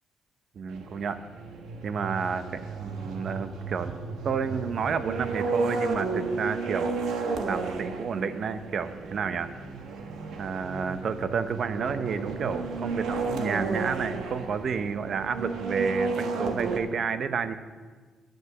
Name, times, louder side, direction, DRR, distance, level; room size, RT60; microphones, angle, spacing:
voice 1, 0.6-1.2 1.8-3.9 4.2-7.0 7.5-9.5 10.4-17.6, right 6 dB, 55° right, 11 dB, 0.7 m, -30 dB
sound 1, 0.7-16.8, right 3 dB, 80° right, 1.2 m, -33 dB
10.5 x 8.3 x 6.0 m, 1.4 s
cardioid pair, 90°, 0 cm